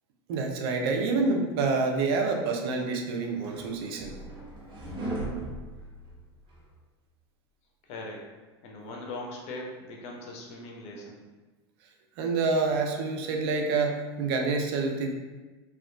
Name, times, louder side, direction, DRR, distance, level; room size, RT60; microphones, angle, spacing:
voice 1, 0.3-4.2 12.2-15.1, right 4 dB, 65° right, 2 dB, 0.5 m, -27 dB
sound 1, 3.0-6.6, right 2 dB, 35° right, 0.9 m, -38 dB
voice 2, 7.9-8.3 8.6-11.2, left 2 dB, 50° left, -1 dB, 0.7 m, -40 dB
2.9 x 2.3 x 2.2 m, 1.2 s
hypercardioid pair, 95°, 14 cm